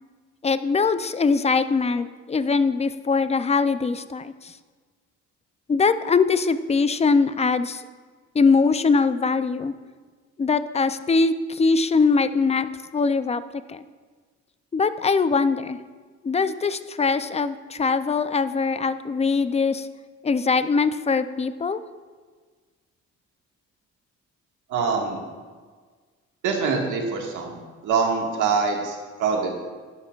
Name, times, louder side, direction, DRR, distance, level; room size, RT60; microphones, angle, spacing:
voice 1, 0.4-4.5 5.7-7.8 8.3-9.7 10.4-13.8 14.7-15.8 16.2-19.9 20.2-21.8, left 4 dB, 20° left, 12 dB, 0.4 m, -22 dB
voice 2, 24.7-25.2 26.4-27.6 27.8-29.6, right 5 dB, 80° right, 0 dB, 1.7 m, -24 dB
11.5 x 9.8 x 2.4 m, 1.5 s
cardioid pair, 90°, 30 cm